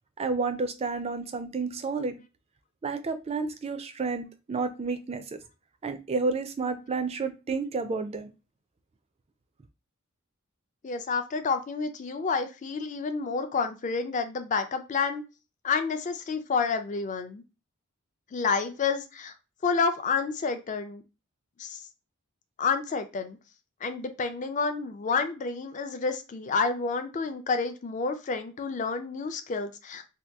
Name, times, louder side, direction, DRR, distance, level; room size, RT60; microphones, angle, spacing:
voice 1, 0.2-2.2 2.8-5.4 5.8-8.3, right 4 dB, 30° right, 9 dB, 0.4 m, -30 dB
voice 2, 10.8-15.2 15.6-17.4 18.3-19.3 19.6-21.0 21.6-21.8 22.6-23.4 23.8-30.0, left 5 dB, 35° left, 8 dB, 0.4 m, -29 dB
2.8 x 2.3 x 3.4 m, 0.30 s
head